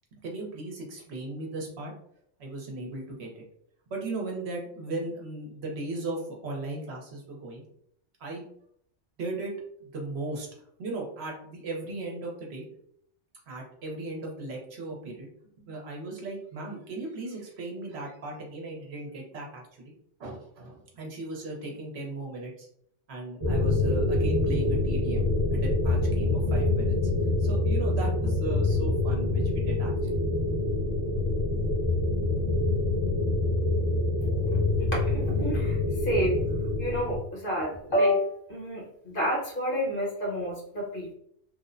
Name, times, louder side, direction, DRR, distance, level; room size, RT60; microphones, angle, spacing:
voice 1, 0.2-1.9 2.4-3.4 3.9-7.6 8.2-8.4 9.2-9.5 9.8-10.5 10.8-12.6 13.5-15.3 15.7-19.9 20.2-22.7 23.1-26.9 27.2-30.2, right 2 dB, 65° right, 0 dB, 0.9 m, -37 dB
sound 1, 23.4-37.2, left 2 dB, 30° right, 0.7 m, -26 dB
voice 2, 35.0-35.8 36.0-36.4 36.8-41.1, equal, 50° left, -3 dB, 1.0 m, -29 dB
3.1 x 2.0 x 2.4 m, 0.68 s
omnidirectional pair, 1.2 m